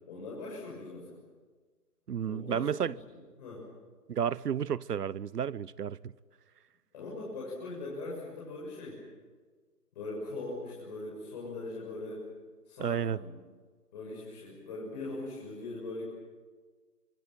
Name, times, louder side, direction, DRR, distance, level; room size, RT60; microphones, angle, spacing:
voice 1, 0.1-1.2 2.2-3.0 3.4-3.7 6.9-9.0 9.9-12.3 12.7-13.3 13.9-16.0, left 2 dB, 25° left, 6.9 m, -40 dB
voice 2, 2.1-2.9 4.1-6.0 12.8-13.2, right 8 dB, 75° right, 0.9 m, -31 dB
25.5 x 23.0 x 9.2 m
hypercardioid pair, 170°, 48 cm